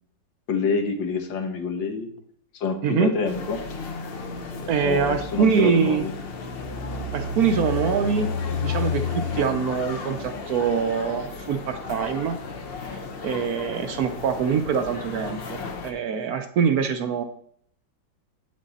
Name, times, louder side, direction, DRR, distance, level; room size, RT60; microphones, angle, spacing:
voice 1, 0.5-2.1 2.5-3.6 4.8-6.1, left 4 dB, 80° left, 4 dB, 1.9 m, -27 dB
sound 1, 3.3-15.9, left 4 dB, 50° left, 0.7 m, -32 dB
voice 2, 4.7-6.1 7.1-12.4 13.2-17.2, right 6 dB, 70° right, 7 dB, 0.9 m, -24 dB
8.3 x 6.4 x 4.1 m, 0.66 s
omnidirectional pair, 2.0 m